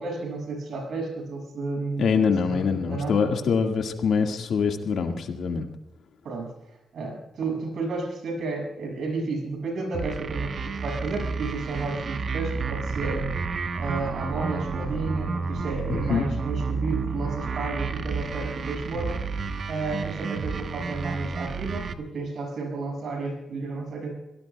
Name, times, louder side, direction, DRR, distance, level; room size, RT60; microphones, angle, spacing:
voice 1, 0.0-3.4 6.2-6.5 6.9-13.3 13.7-19.2 19.7-24.1, right 3 dB, 75° right, 0 dB, 6.4 m, -32 dB
voice 2, 2.0-5.7 15.9-16.3, left 6 dB, 80° left, 4 dB, 1.8 m, -24 dB
sound 1, 9.9-21.9, right 4 dB, 60° right, 1.0 m, -31 dB
24.5 x 18.0 x 2.3 m, 0.90 s
cardioid pair, 90°, 0 cm